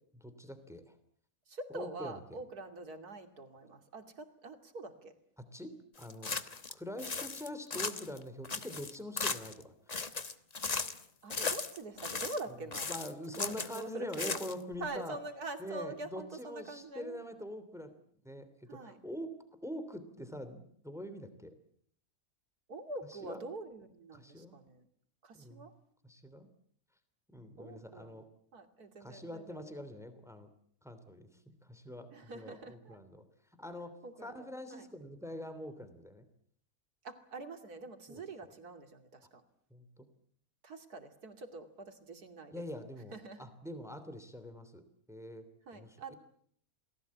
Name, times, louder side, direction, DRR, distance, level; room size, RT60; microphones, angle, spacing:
voice 1, 0.1-1.0 1.7-2.4 5.5-6.3 6.7-10.1 12.9-15.2 15.6-17.9 18.2-19.3 19.6-21.5 23.1-23.4 24.1-24.6 25.3-25.7 26.0-26.5 27.3-28.3 29.0-30.5 30.8-33.2 33.6-36.3 38.1-38.2 39.7-40.1 42.5-44.8 45.1-45.5 45.7-46.1, left 1 dB, ahead, 10 dB, 2.9 m, -44 dB
voice 2, 1.5-5.1 11.2-12.9 13.3-14.5 14.8-17.2 18.7-19.0 22.7-24.9 25.2-25.7 27.6-28.2 28.5-29.6 32.1-33.0 34.0-34.9 37.0-39.4 40.6-42.6 43.1-43.4 45.7-46.1, right 2 dB, 85° right, 6 dB, 3.1 m, -45 dB
sound 1, 6.0-6.7 7.0-8.2 8.4-9.6 9.9-11.0 11.3-12.4 12.7-13.8 14.1-14.7, left 4 dB, 30° left, 1.1 m, -37 dB
28.5 x 19.0 x 8.6 m, 0.64 s
omnidirectional pair, 1.6 m